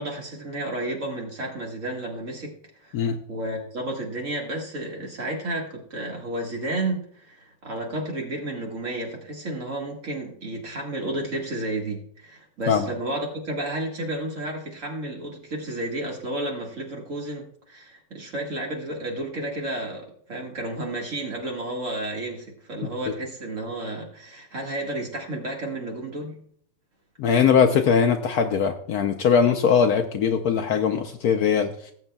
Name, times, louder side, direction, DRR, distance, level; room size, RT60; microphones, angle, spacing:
voice 1, 0.0-2.5 2.8-3.0 3.3-26.4, right 1 dB, 45° right, 0 dB, 2.0 m, -32 dB
voice 2, 27.2-31.9, left 7 dB, 65° left, 5 dB, 1.0 m, -21 dB
18.0 x 8.0 x 2.2 m, 0.63 s
omnidirectional pair, 1.9 m